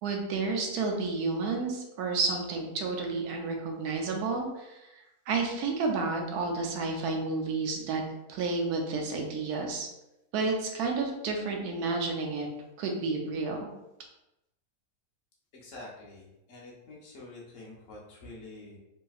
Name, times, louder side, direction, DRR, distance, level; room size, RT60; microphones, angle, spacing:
voice 1, 0.0-4.9 5.3-8.0 8.3-9.9 10.3-12.5 12.8-13.7, right 3 dB, 85° right, 2 dB, 1.2 m, -31 dB
voice 2, 15.5-18.8, left 2 dB, 60° left, -4 dB, 1.0 m, -47 dB
3.1 x 2.7 x 2.3 m, 0.92 s
omnidirectional pair, 1.6 m